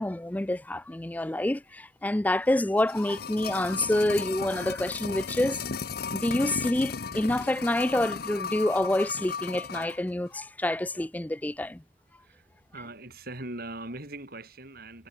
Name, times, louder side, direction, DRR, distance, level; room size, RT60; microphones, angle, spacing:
voice 1, 0.0-5.6 6.1-11.8, left 1 dB, 10° left, 0.4 m, -27 dB
sound 1, 2.6-10.0 10.3-10.4, left 5 dB, 55° left, 0.8 m, -35 dB
voice 2, 12.2-15.1, right 2 dB, 55° right, 6.7 m, -41 dB
head